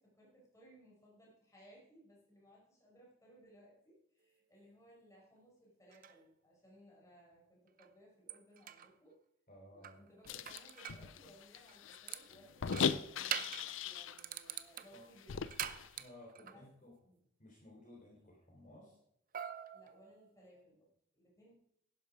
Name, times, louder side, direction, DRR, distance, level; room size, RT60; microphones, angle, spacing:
voice 1, 0.0-9.2 9.7-15.5 16.4-16.7 17.0-17.2 19.7-21.5, equal, 15° left, -4 dB, 5.6 m, -63 dB
sound 1, 5.9-6.2 7.8-7.9 8.3-8.9 9.8-11.1 11.7-12.3 12.7-13.7 14.2-16.6 19.3-20.6, right 9 dB, 45° right, 0.6 m, -44 dB
voice 2, 9.5-9.9 14.9-15.0 15.9-16.9 17.4-19.0, left 1 dB, 40° left, -3 dB, 3.5 m, -57 dB
sound 2, 10.3-14.2 14.5-14.6 14.9-15.9, left 6 dB, 70° left, 0.5 m, -39 dB
11.0 x 11.0 x 4.9 m, 0.73 s
head